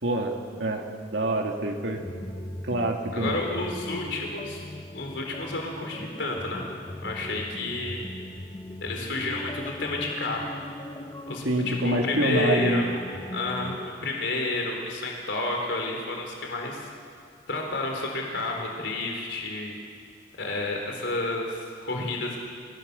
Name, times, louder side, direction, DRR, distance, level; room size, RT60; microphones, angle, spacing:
voice 1, 0.0-2.0 2.6-3.4 11.4-12.8, right 1 dB, 75° right, 2 dB, 2.3 m, -26 dB
sound 1, 1.9-13.9, left 1 dB, 20° left, 0.8 m, -39 dB
voice 2, 3.1-4.6 4.9-6.7 7.0-8.0 8.8-10.5 11.3-13.0 13.3-16.8 17.5-19.7 20.4-22.4, left 2 dB, 70° left, 1 dB, 3.9 m, -30 dB
28.0 x 17.0 x 7.0 m, 2.3 s
head